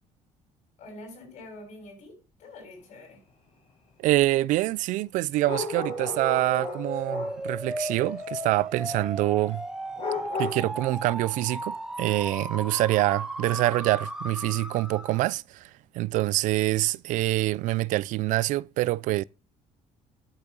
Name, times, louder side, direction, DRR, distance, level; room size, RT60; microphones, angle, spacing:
voice 1, 0.8-3.2, left 2 dB, 65° left, 7.7 m, -46 dB
voice 2, 4.0-9.6 10.4-15.7 15.9-19.2, right 17 dB, 85° right, 0.5 m, -25 dB
sound 1, 5.4-7.5 10.0-10.6, left 4 dB, 45° left, 7.4 m, -34 dB
sound 2, 5.4-15.3, right 1 dB, 5° right, 1.5 m, -36 dB
11.5 x 8.6 x 5.4 m
cardioid pair, 125°, 13 cm